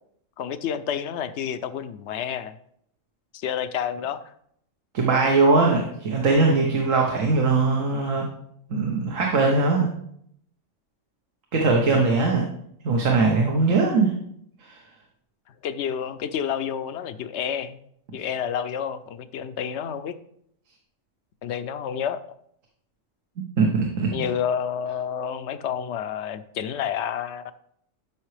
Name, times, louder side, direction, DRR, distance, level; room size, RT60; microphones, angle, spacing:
voice 1, 0.4-2.6 3.3-4.3 15.6-17.8 18.1-20.2 21.4-22.2 24.1-27.4, left 8 dB, 70° left, 12 dB, 0.8 m, -29 dB
voice 2, 4.9-8.3 8.7-9.9 11.5-12.4 12.8-14.1 14.6-14.8 23.6-24.1, right 3 dB, 85° right, 0 dB, 1.5 m, -20 dB
12.0 x 5.7 x 3.2 m, 0.71 s
omnidirectional pair, 1.3 m